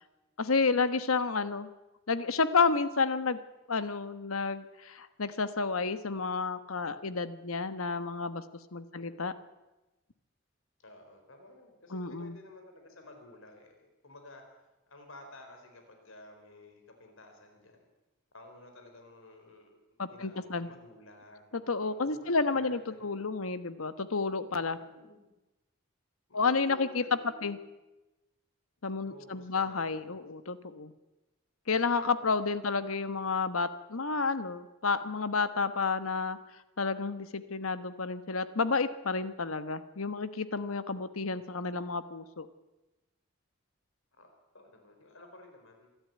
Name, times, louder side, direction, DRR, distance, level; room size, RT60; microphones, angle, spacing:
voice 1, 0.4-1.7 2.1-3.4 3.7-8.4 8.7-9.3 11.9-12.3 20.0-20.7 21.7-24.8 26.3-27.0 27.4-27.6 28.8-30.9 31.7-36.4 36.8-42.5, left 4 dB, 90° left, 12 dB, 1.2 m, -30 dB
voice 2, 10.8-14.5 14.9-17.9 18.3-23.1 24.8-25.3 26.3-27.6 29.0-30.2 32.4-32.8 44.2-45.9, left 2 dB, 75° left, 4 dB, 4.2 m, -53 dB
25.0 x 12.0 x 9.3 m, 1.1 s
head